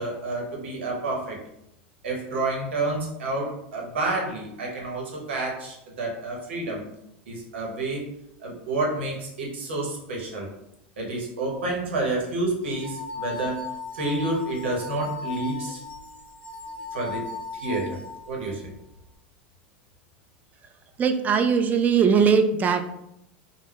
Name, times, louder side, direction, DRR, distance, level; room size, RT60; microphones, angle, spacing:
voice 1, 0.0-1.4 2.0-6.8 7.3-8.1 8.4-10.5 11.0-13.7 13.9-15.8 16.9-17.3 17.5-18.0 18.3-18.6, right 2 dB, 85° right, -1 dB, 0.9 m, -29 dB
sound 1, 12.6-18.5, left 4 dB, 20° left, 0.7 m, -37 dB
voice 2, 21.0-22.9, right 6 dB, 25° right, 7 dB, 0.3 m, -20 dB
2.2 x 2.1 x 3.4 m, 0.81 s
hypercardioid pair, 100°, 6 cm